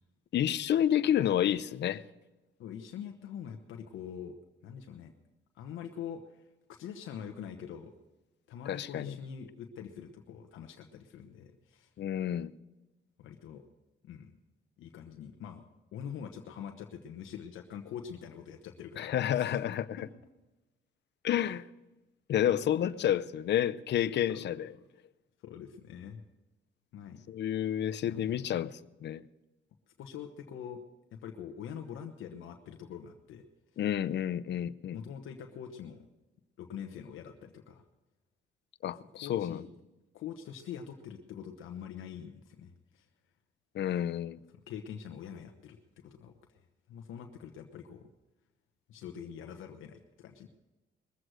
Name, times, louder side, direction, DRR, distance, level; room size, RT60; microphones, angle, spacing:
voice 1, 0.3-2.0 8.7-9.1 12.0-12.5 19.0-20.0 21.2-21.6 22.3-24.7 27.3-28.7 29.0-29.2 33.8-35.0 38.8-39.6 43.7-44.4, left 10 dB, 60° left, 0.6 m, -30 dB
voice 2, 2.6-4.4 4.6-5.1 5.5-6.4 6.7-7.9 8.5-11.9 13.2-13.6 14.0-14.3 14.8-15.6 15.9-19.6 20.0-20.1 22.6-23.0 24.3-24.9 25.4-26.2 26.9-27.2 28.0-28.6 30.0-30.8 31.1-33.5 34.9-36.1 36.6-37.8 38.9-39.7 40.1-43.0 44.5-46.6 46.9-48.1 48.9-50.5, left 8 dB, 80° left, 1.1 m, -44 dB
21.5 x 7.9 x 6.3 m
cardioid pair, 90°, 20 cm